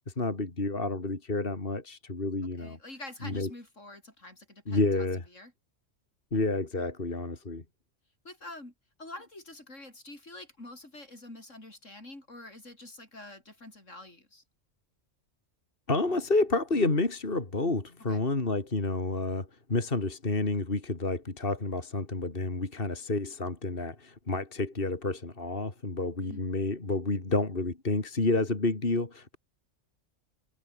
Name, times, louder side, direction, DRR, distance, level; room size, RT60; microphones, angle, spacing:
voice 1, 0.2-2.8 3.2-3.5 4.7-5.2 6.3-7.6 15.9-29.4, left 2 dB, 45° left, 3.1 m, -29 dB
voice 2, 2.6-5.5 8.2-8.7 9.0-14.4 18.0-18.2 26.2-26.4, left 2 dB, 70° left, 6.7 m, -47 dB
omnidirectional pair, 1.3 m